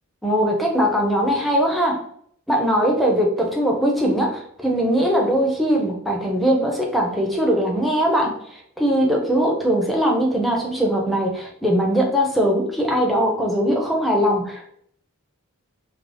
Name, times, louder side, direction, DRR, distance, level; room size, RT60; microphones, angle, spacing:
voice 1, 0.2-2.0 2.5-14.7, equal, ahead, -1 dB, 0.4 m, -20 dB
2.5 x 2.0 x 3.2 m, 0.66 s
head